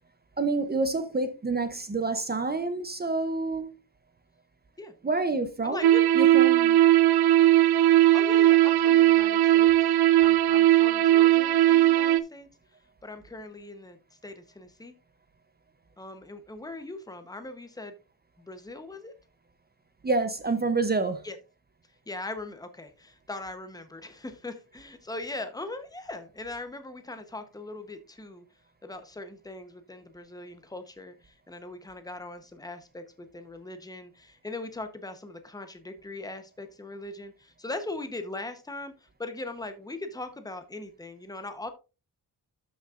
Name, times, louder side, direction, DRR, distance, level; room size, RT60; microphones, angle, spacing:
voice 1, 0.4-3.8 5.0-5.9 6.1-6.8 20.0-21.2, right 3 dB, 25° right, 0.7 m, -28 dB
voice 2, 5.6-6.0 8.1-9.7 10.2-12.5 13.0-14.0 14.2-14.9 16.0-18.0 18.4-19.1 21.2-21.4 22.1-28.4 28.8-41.7, left 2 dB, 10° left, 0.9 m, -40 dB
sound 1, 5.8-12.2, right 14 dB, 60° right, 0.6 m, -19 dB
12.5 x 6.3 x 2.5 m
wide cardioid pair, 165°, 42 cm